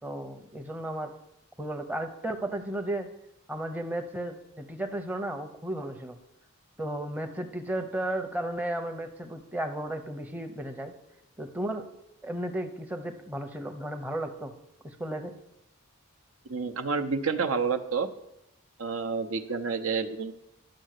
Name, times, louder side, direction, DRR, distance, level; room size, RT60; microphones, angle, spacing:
voice 1, 0.0-1.1 1.6-3.1 3.5-6.2 6.8-10.9 11.4-11.9 12.2-14.5 14.8-15.3, right 1 dB, 10° right, 4 dB, 0.7 m, -34 dB
voice 2, 16.5-18.1 18.8-20.3, right 5 dB, 75° right, 6 dB, 0.9 m, -29 dB
11.5 x 6.5 x 6.5 m, 0.82 s
head